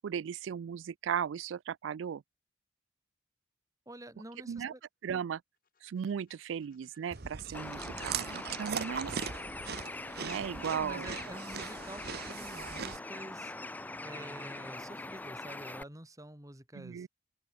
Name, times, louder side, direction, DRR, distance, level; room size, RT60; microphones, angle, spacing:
voice 1, 0.0-2.2 4.5-4.7 5.0-5.4 5.8-9.2 10.2-11.1 16.8-17.1, right 8 dB, 85° right, 0.3 m, -36 dB
voice 2, 3.9-4.8 10.7-13.5 14.0-17.1, right 1 dB, 20° right, 2.7 m, -48 dB
sound 1, 5.5-11.4, left 7 dB, 50° left, 5.6 m, -73 dB
Chewing mastication, 7.1-13.0, right 6 dB, 55° right, 0.9 m, -40 dB
Bird, 7.5-15.8, left 2 dB, 10° left, 0.4 m, -42 dB
open air
head